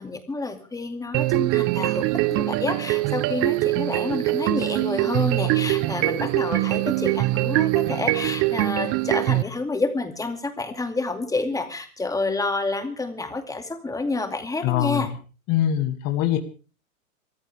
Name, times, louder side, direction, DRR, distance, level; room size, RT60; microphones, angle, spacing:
voice 1, 0.0-15.1, left 3 dB, 10° left, 7 dB, 2.4 m, -29 dB
sound 1, 1.1-9.4, right 19 dB, 35° right, 0.9 m, -23 dB
voice 2, 14.6-15.1 15.5-16.4, left 11 dB, 40° left, 5 dB, 2.4 m, -23 dB
26.5 x 15.0 x 3.5 m, 0.37 s
hypercardioid pair, 125°, 41 cm